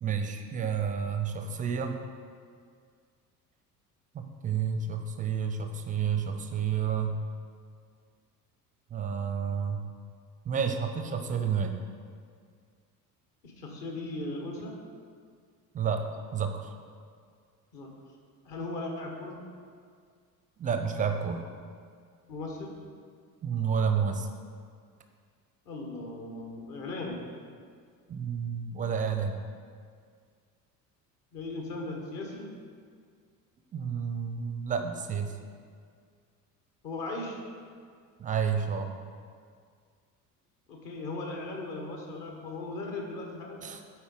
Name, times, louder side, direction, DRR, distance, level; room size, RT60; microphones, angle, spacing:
voice 1, 0.0-2.0 4.1-7.2 8.9-9.8 10.4-11.8 15.7-16.7 20.6-21.4 23.4-24.3 28.1-29.4 33.7-35.3 38.2-38.9 43.6-43.8, right 6 dB, 20° right, 6 dB, 0.4 m, -30 dB
voice 2, 13.4-14.7 17.7-17.9 18.4-19.4 22.3-22.7 25.7-27.2 31.3-32.5 36.8-37.4 40.7-43.6, left 2 dB, 55° left, 1 dB, 1.4 m, -37 dB
8.8 x 4.2 x 3.8 m, 2.1 s
figure-of-eight pair, 60°, 48 cm